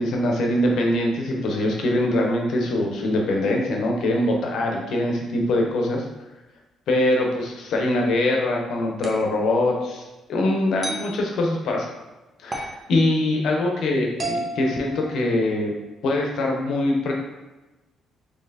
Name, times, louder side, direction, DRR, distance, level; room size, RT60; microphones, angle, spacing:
voice 1, 0.0-6.0 6.9-10.0 10.3-11.9 12.4-15.7 16.0-17.1, left 1 dB, 75° left, 0 dB, 0.7 m, -23 dB
sound 1, 9.0-9.3 10.8-11.1 12.5-12.8 14.2-15.6, right 2 dB, 30° right, 0.8 m, -32 dB
4.1 x 2.8 x 2.7 m, 1.1 s
cardioid pair, 90°, 0 cm